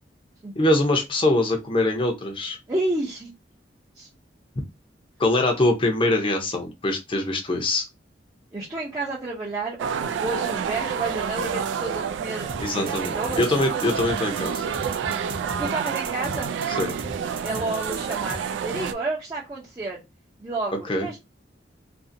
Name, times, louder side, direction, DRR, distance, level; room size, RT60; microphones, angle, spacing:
voice 1, 0.6-2.6 5.2-7.8 12.6-14.7 16.8-16.9 20.9-21.1, left 2 dB, 30° left, 3 dB, 0.6 m, -23 dB
voice 2, 2.7-3.3 4.0-4.1 8.5-13.6 15.6-16.5 17.4-20.0 20.4-21.2, right 2 dB, 20° right, -5 dB, 0.6 m, -30 dB
sound 1, 9.8-18.9, right 7 dB, 90° right, 0.3 m, -29 dB
sound 2, 12.5-18.4, right 3 dB, 55° right, 0.7 m, -37 dB
2.6 x 2.5 x 2.6 m, 0.23 s
head